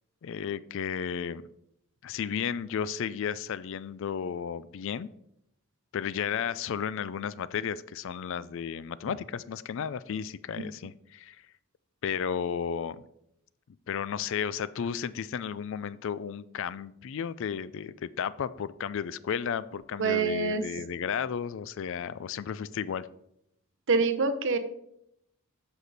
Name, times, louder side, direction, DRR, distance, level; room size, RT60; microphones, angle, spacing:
voice 1, 0.2-1.4 2.0-5.1 5.9-11.4 12.0-13.0 13.9-23.1, left 7 dB, 60° left, 17 dB, 0.3 m, -33 dB
voice 2, 20.0-20.6 23.9-24.6, right 4 dB, 60° right, 10 dB, 0.8 m, -25 dB
8.1 x 6.1 x 4.0 m, 0.77 s
head